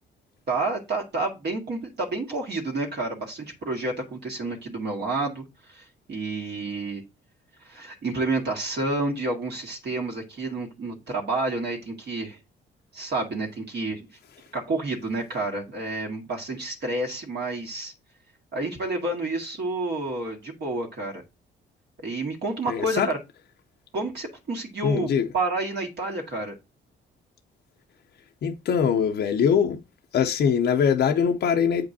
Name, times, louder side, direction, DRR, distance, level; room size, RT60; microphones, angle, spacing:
voice 1, 0.5-7.0 7.6-12.4 12.9-14.1 14.5-17.9 18.5-21.2 22.0-23.2 23.9-26.6, right 2 dB, 60° right, 1.8 m, -29 dB
voice 2, 22.7-23.1 24.8-25.3 28.4-29.8 30.1-31.9, left 7 dB, 60° left, 0.7 m, -22 dB
7.7 x 5.2 x 2.7 m
cardioid pair, 90°, 20 cm